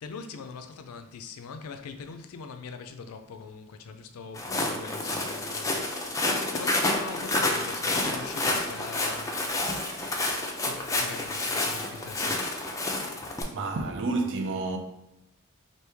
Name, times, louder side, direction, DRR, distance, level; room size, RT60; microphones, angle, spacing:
voice 1, 0.0-5.9 6.2-9.4 9.8-12.5, left 5 dB, 75° left, 0.4 m, -42 dB
Walk footsteps, 4.3-13.4, left 2 dB, 15° left, 0.4 m, -29 dB
voice 2, 13.5-14.8, right 3 dB, 60° right, 0.5 m, -29 dB
3.0 x 2.7 x 3.3 m
head